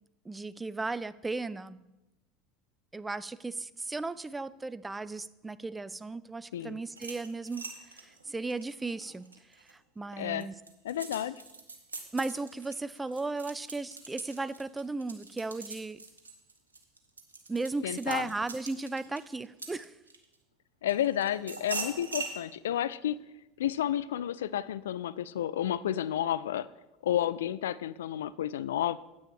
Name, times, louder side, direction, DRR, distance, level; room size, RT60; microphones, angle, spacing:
voice 1, 0.3-1.8 2.9-7.7 7.9-9.3 9.7-10.5 12.1-16.0 17.5-19.9, right 3 dB, 15° right, 16 dB, 0.4 m, -36 dB
sound 1, 6.9-9.7 10.2-20.3 20.9-22.4, right 3 dB, 90° right, 1.0 m, -42 dB
voice 2, 10.8-11.4 17.8-18.3 20.8-23.2 23.6-26.7 27.0-29.0, left 11 dB, 75° left, 18 dB, 0.3 m, -31 dB
9.3 x 8.6 x 4.7 m, 0.97 s
hypercardioid pair, 75°, 0 cm